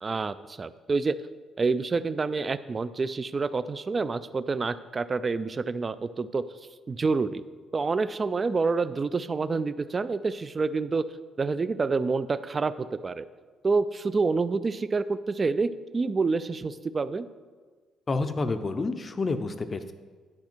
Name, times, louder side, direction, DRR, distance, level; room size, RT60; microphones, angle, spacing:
voice 1, 0.0-1.2 1.6-6.4 6.9-7.4 7.7-11.1 11.4-13.3 13.6-17.3, right 4 dB, 25° right, 15 dB, 0.3 m, -27 dB
voice 2, 18.1-19.9, left 3 dB, 25° left, 9 dB, 0.5 m, -29 dB
10.5 x 4.8 x 4.5 m, 1.5 s
cardioid pair, 125°, 0 cm